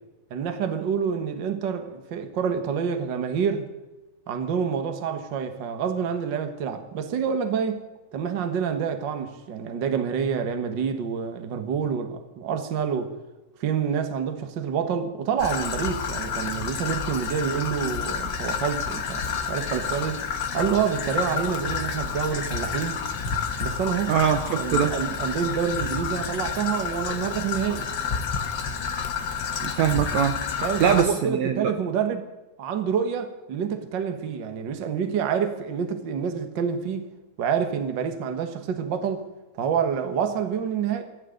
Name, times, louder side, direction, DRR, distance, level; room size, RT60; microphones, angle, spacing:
voice 1, 0.3-3.6 4.3-7.8 8.1-13.1 13.6-20.2 20.5-23.0 23.6-24.1 24.5-27.9 30.6-32.3 32.6-37.1 37.4-39.3 39.6-41.0, right 7 dB, 50° right, 7 dB, 1.5 m, -27 dB
Traffic noise roadway noise / Trickle dribble, 15.4-31.0, left 6 dB, 80° left, 0.9 m, -30 dB
voice 2, 24.1-24.9 29.6-31.7, right 8 dB, 70° right, 7 dB, 1.8 m, -23 dB
26.0 x 11.0 x 3.9 m, 1.1 s
omnidirectional pair, 3.7 m